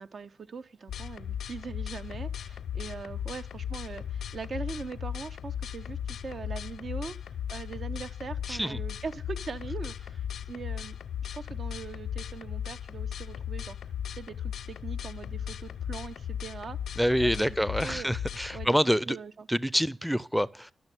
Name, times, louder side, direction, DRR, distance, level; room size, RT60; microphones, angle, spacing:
voice 1, 0.0-11.0 11.2-13.8 14.1-16.8 17.2-17.6 17.8-18.1 18.5-18.8 19.1-19.5, right 5 dB, 65° right, 1.0 m, -41 dB
sound 1, 0.9-18.7, left 9 dB, 90° left, 0.6 m, -37 dB
voice 2, 8.5-8.8 17.0-19.2 19.5-20.7, equal, ahead, 0.5 m, -27 dB
12.0 x 6.3 x 9.2 m
cardioid pair, 55°, 0 cm